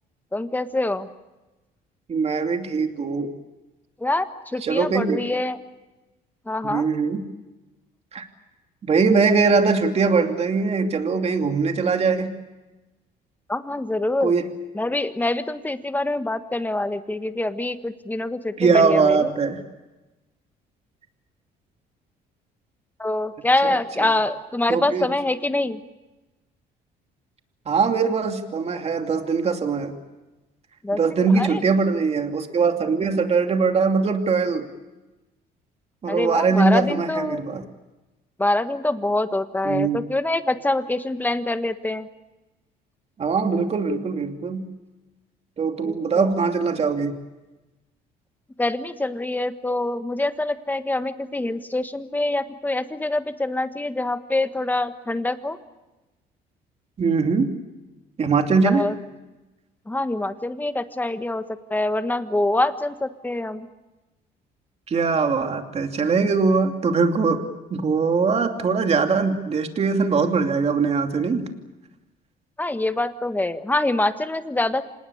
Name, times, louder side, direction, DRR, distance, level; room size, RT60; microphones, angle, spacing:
voice 1, 0.3-1.1 4.0-5.6 6.5-6.9 13.5-14.3 14.7-19.3 23.0-25.8 30.8-31.0 31.4-31.6 36.1-37.4 38.4-42.1 45.8-46.3 48.6-55.6 58.6-58.9 59.9-61.4 61.7-63.7 72.6-74.8, left 2 dB, 10° left, 10 dB, 1.5 m, -25 dB
voice 2, 2.1-3.3 4.6-5.2 6.6-7.2 8.1-8.3 8.9-12.3 14.2-14.4 18.6-19.6 23.6-24.1 24.7-25.1 27.7-30.0 30.9-34.7 36.0-37.6 39.6-40.0 43.2-44.7 45.6-47.2 57.0-57.5 58.2-58.9 64.9-67.4 67.7-71.5, right 4 dB, 40° right, 5 dB, 2.7 m, -21 dB
26.5 x 19.5 x 8.7 m, 1.1 s
cardioid pair, 110°, 17 cm